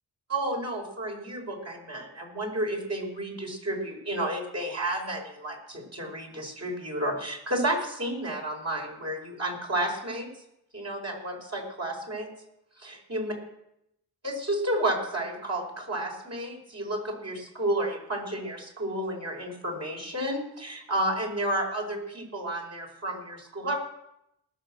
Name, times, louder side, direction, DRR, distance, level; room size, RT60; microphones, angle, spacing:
voice 1, 0.3-10.3 10.7-12.3 12.8-13.3 14.2-23.8, right 1 dB, 40° right, 0 dB, 5.4 m, -31 dB
19.5 x 6.5 x 7.7 m, 0.81 s
cardioid pair, 55°, 38 cm